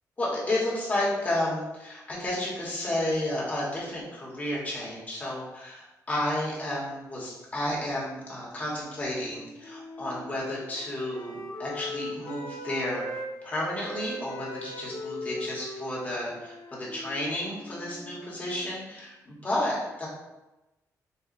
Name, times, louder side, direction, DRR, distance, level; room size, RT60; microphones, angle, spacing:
voice 1, 0.2-20.1, left 1 dB, 25° left, -6 dB, 1.2 m, -32 dB
Wind instrument woodwind instrument, 8.4-13.3 13.5-18.9, left 1 dB, 65° left, 1.3 m, -41 dB
6.8 x 2.3 x 2.5 m, 1.0 s
wide cardioid pair, 170°, 7 cm